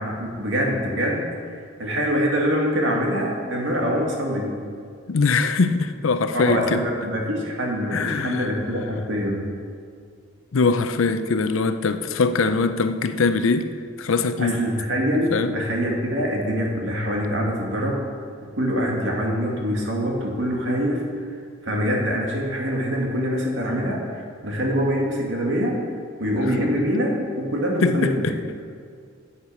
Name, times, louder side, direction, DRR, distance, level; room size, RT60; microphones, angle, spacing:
voice 1, 0.0-4.6 6.3-9.5 14.4-18.0 18.5-21.2 21.6-25.8 26.2-28.7, equal, 65° right, -1 dB, 2.0 m, -24 dB
voice 2, 5.1-6.8 7.9-8.5 10.5-13.7 14.0-14.6 15.3-15.5 27.8-28.3, left 4 dB, 80° left, 11 dB, 0.6 m, -22 dB
8.6 x 8.2 x 6.2 m, 2.2 s
head